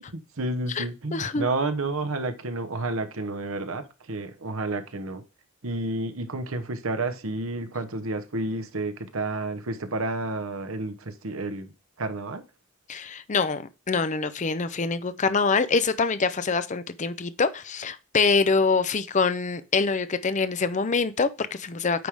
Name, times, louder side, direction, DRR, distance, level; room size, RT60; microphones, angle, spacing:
voice 1, 0.4-5.2 5.6-11.7 12.0-12.4, right 2 dB, 70° right, 1.1 m, -30 dB
voice 2, 1.1-1.5 12.9-22.1, left 4 dB, 35° left, 0.6 m, -25 dB
9.3 x 3.6 x 4.7 m
head